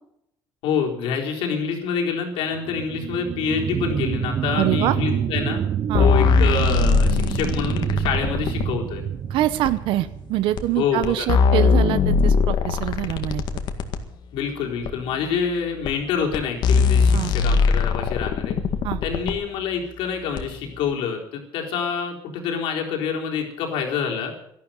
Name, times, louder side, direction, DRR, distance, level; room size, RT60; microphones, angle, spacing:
voice 1, 0.6-5.6 6.0-9.0 10.8-11.3 14.3-18.6 19.0-24.3, left 6 dB, 85° left, 0 dB, 4.0 m, -26 dB
sound 1, 2.5-11.6 12.0-12.1, right 9 dB, 45° right, 0.6 m, -27 dB
voice 2, 4.6-5.0 5.9-6.1 9.3-13.4 17.1-17.3 18.8-19.0, right 14 dB, 80° right, 14 dB, 0.8 m, -24 dB
sound 2, 5.9-8.7 9.6-9.7 10.6-10.7 11.0-14.0 14.8-14.9 15.8-15.9 16.3-16.4 16.6-19.3 20.4-20.5, left 5 dB, 60° left, 1.9 m, -20 dB
12.5 x 11.5 x 9.3 m, 0.78 s
cardioid pair, 135°, 9 cm